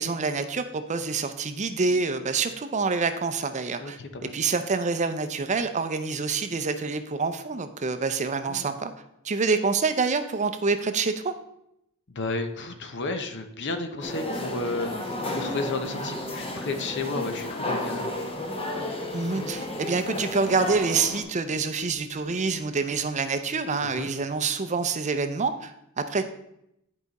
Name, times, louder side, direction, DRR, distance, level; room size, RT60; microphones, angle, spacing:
voice 1, 0.0-8.9 9.2-11.3 19.1-26.3, right 4 dB, 35° right, 9 dB, 0.5 m, -27 dB
voice 2, 3.8-4.4 8.5-8.7 12.1-18.2 23.8-24.1, left 3 dB, 55° left, 7 dB, 0.8 m, -32 dB
sound 1, 14.0-21.2, left 1 dB, 25° left, 0.9 m, -32 dB
10.5 x 4.8 x 4.1 m, 0.80 s
head